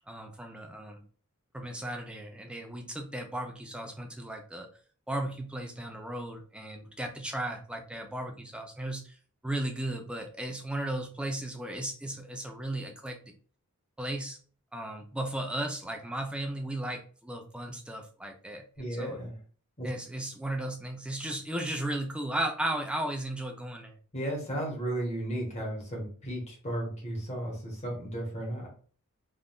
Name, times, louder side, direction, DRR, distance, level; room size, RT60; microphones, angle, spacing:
voice 1, 0.1-1.0 1.5-4.7 5.1-9.2 9.4-13.2 14.0-14.4 14.7-19.2 19.8-24.0, right 1 dB, 5° right, 3 dB, 0.4 m, -35 dB
voice 2, 18.8-19.4 19.8-19.9 24.1-28.7, right 1 dB, 30° left, -1 dB, 1.1 m, -34 dB
3.6 x 2.5 x 2.3 m, 0.43 s
head